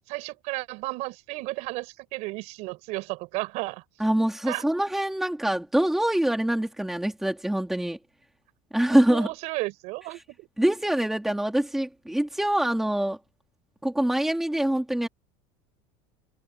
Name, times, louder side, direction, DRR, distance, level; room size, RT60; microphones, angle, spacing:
voice 1, 0.1-3.8 4.5-4.6 8.9-10.5, right 23 dB, 50° right, 7.0 m, -33 dB
voice 2, 4.0-8.0 8.7-9.3 10.6-13.2 13.8-15.1, right 1 dB, ahead, 2.5 m, -24 dB
cardioid pair, 180°, 15 cm